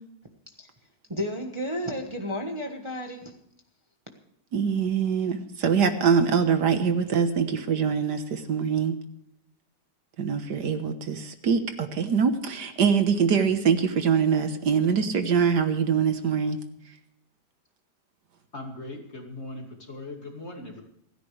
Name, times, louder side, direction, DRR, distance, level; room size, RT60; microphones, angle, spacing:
voice 1, 1.1-3.3, equal, 20° right, 1.3 m, -32 dB
voice 2, 4.5-9.0 10.2-16.6, right 6 dB, 70° right, 1.8 m, -24 dB
voice 3, 18.5-20.8, left 2 dB, 40° left, 2.6 m, -39 dB
28.0 x 10.0 x 3.3 m
omnidirectional pair, 1.9 m